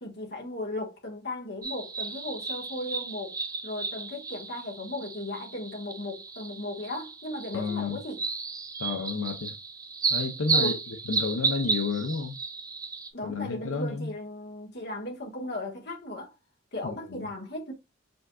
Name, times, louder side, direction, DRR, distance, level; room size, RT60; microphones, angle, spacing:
voice 1, 0.0-3.4 3.6-8.2 10.5-10.8 13.1-16.3 16.7-17.7, left 1 dB, 50° left, 1.5 m, -36 dB
sound 1, 1.6-13.1, right 4 dB, 15° right, 0.4 m, -33 dB
voice 2, 7.5-8.0 8.8-9.5 10.1-12.4 13.2-14.1 16.9-17.3, left 4 dB, 80° left, 0.6 m, -31 dB
5.1 x 3.6 x 2.3 m
head